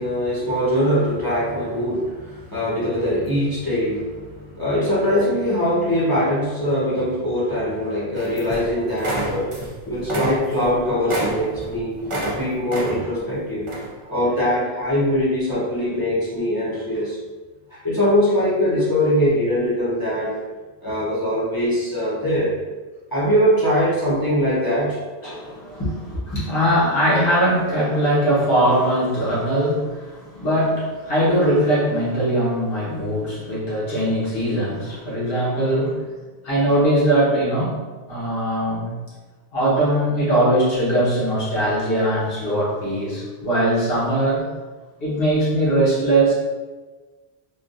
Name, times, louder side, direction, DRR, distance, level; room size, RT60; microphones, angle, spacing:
voice 1, 0.0-12.0 12.3-13.7 14.1-17.2 17.7-20.4 20.8-22.5 23.1-25.0 26.1-26.4, equal, 20° left, -10 dB, 0.9 m, -22 dB
sound 1, 8.2-8.7 9.0-9.7 10.0-12.4 12.7-13.2 13.7-13.9, right 1 dB, 40° right, 0.5 m, -27 dB
voice 2, 25.2-25.8 26.3-36.0 36.4-37.8 38.1-38.9 39.5-44.5 45.0-46.3, right 1 dB, 60° left, -8 dB, 1.3 m, -20 dB
3.7 x 2.4 x 2.5 m, 1.3 s
omnidirectional pair, 1.1 m